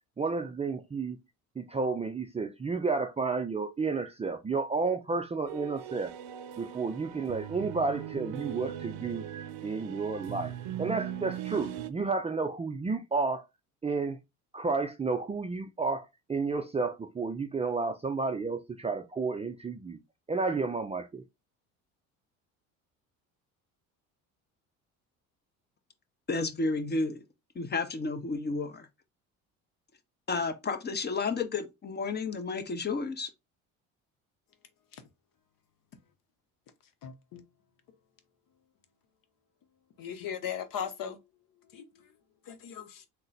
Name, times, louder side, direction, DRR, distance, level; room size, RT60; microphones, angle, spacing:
voice 1, 0.2-1.2 1.6-6.1 6.6-9.2 9.6-10.5 10.8-13.4 13.8-14.2 14.5-20.0 20.3-21.2, right 4 dB, 15° right, 0.5 m, -31 dB
sound 1, 5.5-11.9, right 11 dB, 65° right, 0.6 m, -39 dB
voice 2, 26.3-27.2 27.5-28.9 30.3-33.3, left 3 dB, 25° left, 0.8 m, -31 dB
voice 3, 37.0-37.4 40.0-41.2 41.7-41.8 42.5-43.0, left 8 dB, 50° left, 0.9 m, -37 dB
3.8 x 2.2 x 4.0 m
hypercardioid pair, 65°, 42 cm